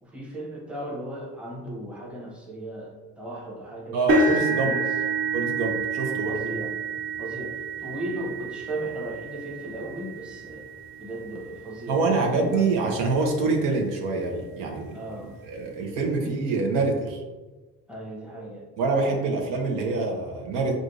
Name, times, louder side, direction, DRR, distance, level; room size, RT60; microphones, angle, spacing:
voice 1, 0.0-4.9 6.3-6.7 7.2-10.7 11.0-12.8 14.9-15.4 17.9-18.7, right 1 dB, 5° right, -4 dB, 0.8 m, -36 dB
voice 2, 3.9-4.8 5.3-6.3 11.9-17.2 18.8-20.8, right 3 dB, 90° right, 1 dB, 0.9 m, -25 dB
sound 1, 4.1-12.1 12.7-13.0 13.4-13.5 14.9-15.0, right 3 dB, 45° right, 1.2 m, -29 dB
6.2 x 2.6 x 2.5 m, 1.2 s
cardioid pair, 145°, 30 cm